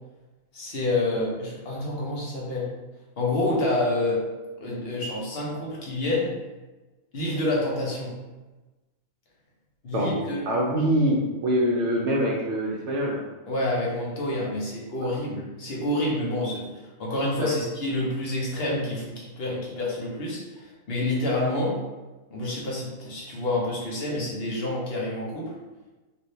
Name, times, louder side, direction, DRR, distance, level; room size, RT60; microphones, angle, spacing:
voice 1, 0.5-2.7 3.2-4.2 4.6-6.4 7.1-8.2 9.8-10.4 13.5-21.8 22.3-25.5, left 1 dB, 50° left, -4 dB, 1.0 m, -28 dB
voice 2, 10.5-13.2 15.0-15.2 17.4-17.5, equal, 65° right, -3 dB, 0.9 m, -24 dB
3.2 x 2.9 x 2.7 m, 1.2 s
omnidirectional pair, 1.4 m